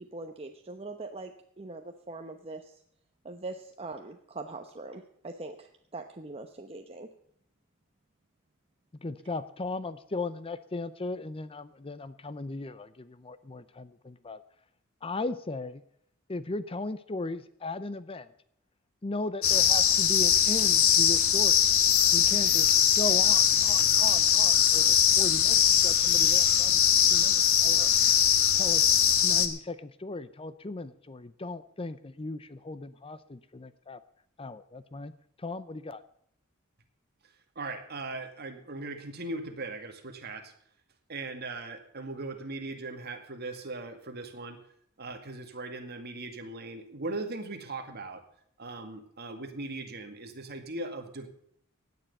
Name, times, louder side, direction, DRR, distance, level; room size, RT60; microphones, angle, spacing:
voice 1, 0.0-2.7 3.2-7.1, right 2 dB, 30° right, 4 dB, 0.9 m, -42 dB
voice 2, 9.0-14.4 15.0-15.8 16.3-18.3 19.0-21.6 22.1-22.7 22.9-27.9 28.6-28.8 29.2-34.0 34.4-35.1 35.4-36.0, left 2 dB, 25° left, 14 dB, 0.6 m, -37 dB
sound 1, 19.4-29.5, left 9 dB, 75° left, 1.4 m, -22 dB
voice 3, 37.6-40.5 41.1-44.6 45.0-48.2 48.6-51.3, right 2 dB, 50° right, 5 dB, 2.2 m, -39 dB
16.5 x 9.4 x 5.5 m, 0.68 s
head